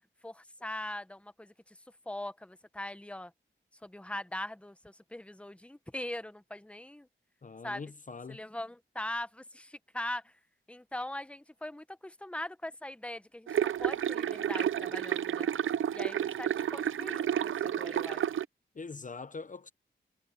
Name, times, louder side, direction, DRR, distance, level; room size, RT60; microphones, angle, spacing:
voice 1, 0.2-1.8 2.1-3.3 3.8-7.1 7.6-7.8 8.3-10.3 10.7-15.5 15.9-18.2, left 1 dB, 5° left, 1.1 m, -41 dB
voice 2, 7.4-8.4 18.7-19.7, left 4 dB, 40° left, 0.8 m, -43 dB
sound 1, 13.5-18.4, right 10 dB, 80° right, 0.5 m, -31 dB
wide cardioid pair, 85°, 20 cm